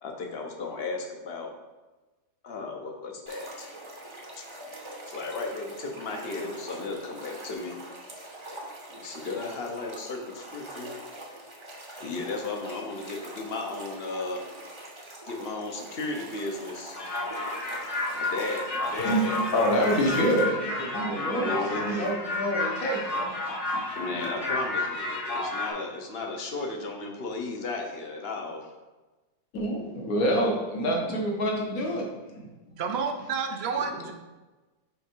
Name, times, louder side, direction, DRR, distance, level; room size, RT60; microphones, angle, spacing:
voice 1, 0.0-1.5 2.4-3.7 4.4-4.5 5.1-7.8 8.9-10.9 12.0-14.5 15.3-17.0 18.1-20.3 21.2-22.0 24.0-28.7 33.9-34.1, left 3 dB, 50° left, 2 dB, 0.9 m, -35 dB
sound 1, 3.3-20.4, right 1 dB, 25° right, 0.8 m, -44 dB
sound 2, 16.9-25.7, left 2 dB, 85° left, 2.1 m, -31 dB
voice 2, 19.0-23.4 23.7-23.8 29.5-32.5, equal, 65° left, 0 dB, 1.6 m, -27 dB
voice 3, 32.8-34.1, right 5 dB, 60° right, 4 dB, 0.7 m, -30 dB
5.7 x 4.4 x 4.5 m, 1.2 s
omnidirectional pair, 1.6 m